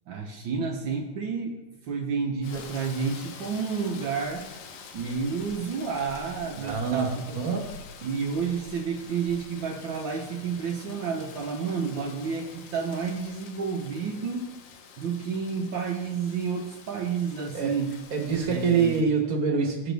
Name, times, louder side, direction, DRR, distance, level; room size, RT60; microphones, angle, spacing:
voice 1, 0.1-4.5 4.9-7.4 8.0-14.5 15.0-18.0 18.4-19.1, right 5 dB, 75° right, 0 dB, 1.1 m, -30 dB
Rain, 2.4-19.0, left 5 dB, 75° left, 2.2 m, -46 dB
voice 2, 6.5-7.1 7.3-7.7 17.5-17.7 18.1-19.9, right 5 dB, 40° right, 1 dB, 1.5 m, -25 dB
16.5 x 6.0 x 3.5 m, 1.0 s
omnidirectional pair, 3.3 m